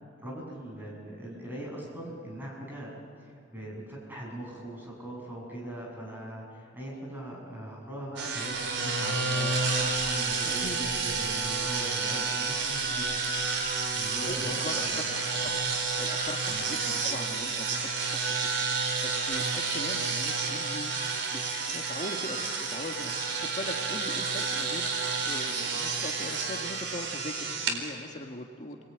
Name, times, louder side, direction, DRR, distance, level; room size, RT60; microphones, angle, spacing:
voice 1, 0.2-2.9 3.2-9.6 10.0-13.1 13.8-15.0 16.5-16.7, right 1 dB, 10° right, -2 dB, 7.0 m, -41 dB
sound 1, 8.2-27.8, right 4 dB, 70° right, 4.1 m, -30 dB
voice 2, 9.3-9.9 10.4-10.9 12.0-12.3 14.3-17.7 17.9-24.9 25.3-28.8, left 1 dB, 40° left, 2 dB, 1.8 m, -41 dB
29.0 x 22.0 x 9.3 m, 2.3 s
head